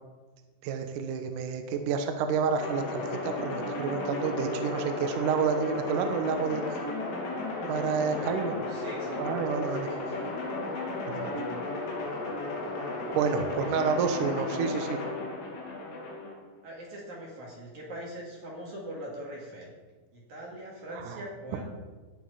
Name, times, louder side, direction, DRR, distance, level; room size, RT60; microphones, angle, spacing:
voice 1, 0.6-6.9 7.6-8.5 9.2-9.9 11.1-11.4 13.1-15.0 21.0-21.2, right 5 dB, 70° right, 6 dB, 2.1 m, -29 dB
sound 1, 2.6-16.3, left 2 dB, 75° left, 5.0 m, -34 dB
voice 2, 7.9-9.3 9.8-10.3 13.6-14.1 16.6-19.7 20.1-21.6, right 1 dB, 50° right, -3 dB, 3.1 m, -42 dB
18.0 x 6.2 x 5.6 m, 1.3 s
omnidirectional pair, 4.9 m